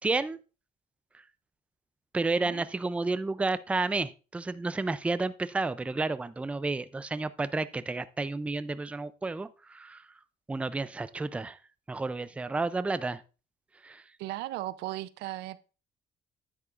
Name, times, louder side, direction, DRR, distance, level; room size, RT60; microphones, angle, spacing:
voice 1, 0.0-0.4 2.1-10.0 10.5-11.6 11.9-13.2 13.8-14.0, right 3 dB, 5° right, 0.3 m, -31 dB
voice 2, 2.3-2.6 14.2-15.6, right 16 dB, 85° right, 0.5 m, -37 dB
9.8 x 8.5 x 2.4 m
cardioid pair, 110°, 17 cm